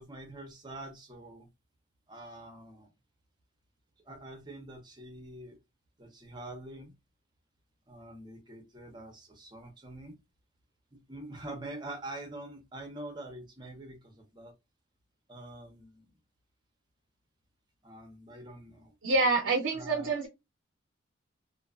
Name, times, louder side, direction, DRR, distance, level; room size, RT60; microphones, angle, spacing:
voice 1, 0.0-1.5 2.1-2.9 4.0-5.6 6.0-7.0 7.9-10.2 10.9-14.5 15.3-16.1 17.8-18.9 19.7-20.2, right 1 dB, 20° right, 0.6 m, -45 dB
voice 2, 19.0-20.3, right 3 dB, 85° right, 0.5 m, -27 dB
2.5 x 2.2 x 2.3 m
head